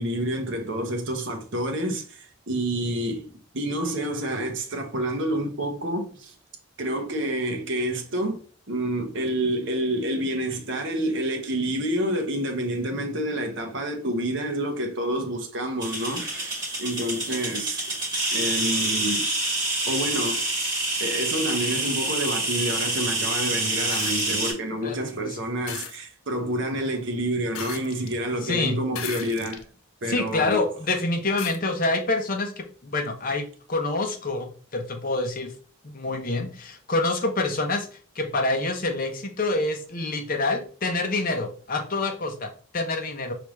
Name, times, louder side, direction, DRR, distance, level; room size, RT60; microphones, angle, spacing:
voice 1, 0.0-6.3 6.8-8.4 8.7-17.8 18.3-19.3 19.9-20.5 21.0-29.6 30.0-30.6, right 1 dB, 55° right, 0.8 m, -28 dB
sound 1, 15.8-24.5, right 2 dB, 20° right, 2.0 m, -27 dB
sound 2, 23.9-24.4 25.7-26.0 27.5-28.2 28.9-29.7 30.3-30.4 31.4-31.6 33.0-33.1, left 9 dB, 70° left, 0.5 m, -36 dB
voice 2, 24.8-25.3 28.4-28.8 30.1-35.5 35.9-37.9 38.2-43.3, left 2 dB, 40° left, 0.7 m, -27 dB
4.9 x 3.4 x 3.1 m
head